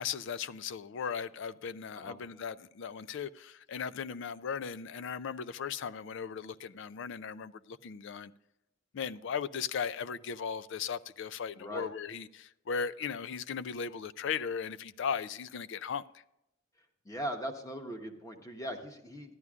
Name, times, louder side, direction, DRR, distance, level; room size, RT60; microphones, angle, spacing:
voice 1, 0.0-8.3 8.9-16.0, left 6 dB, 60° left, 0.4 m, -37 dB
voice 2, 11.6-11.9 17.0-19.3, equal, 15° left, 1.0 m, -40 dB
13.5 x 11.0 x 2.4 m
head